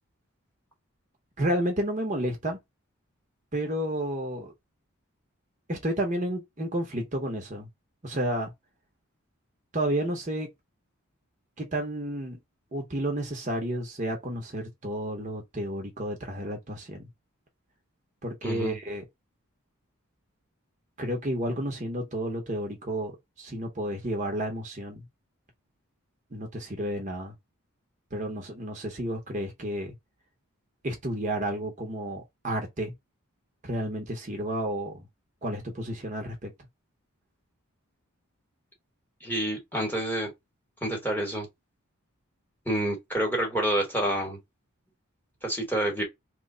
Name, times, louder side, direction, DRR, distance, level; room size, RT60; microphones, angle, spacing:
voice 1, 1.4-2.6 3.5-4.5 5.7-7.7 8.0-8.5 9.7-10.5 11.6-12.4 12.7-17.1 18.2-19.0 21.0-25.0 26.3-27.3 28.1-29.9 30.8-32.9 33.6-35.1 35.4-36.5, right 1 dB, 35° right, 0.7 m, -31 dB
voice 2, 18.4-18.8 39.2-40.3 40.8-41.5 42.7-44.4 45.4-46.0, right 1 dB, 10° left, 1.1 m, -28 dB
3.0 x 2.1 x 3.7 m
head